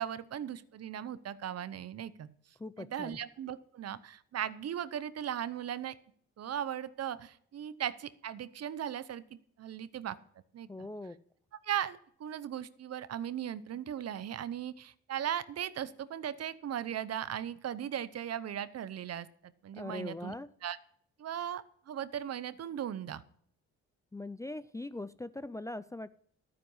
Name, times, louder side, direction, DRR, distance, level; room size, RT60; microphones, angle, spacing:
voice 1, 0.0-2.3 2.8-5.9 6.4-9.2 9.6-10.2 10.5-10.9 11.6-20.3 20.6-20.8 21.2-23.2, right 10 dB, 55° right, 16 dB, 0.8 m, -38 dB
voice 2, 2.6-3.2 10.7-11.2 19.8-20.5 24.1-26.2, left 2 dB, 10° left, 15 dB, 0.4 m, -41 dB
12.0 x 9.5 x 5.5 m, 0.63 s
cardioid pair, 90°, 30 cm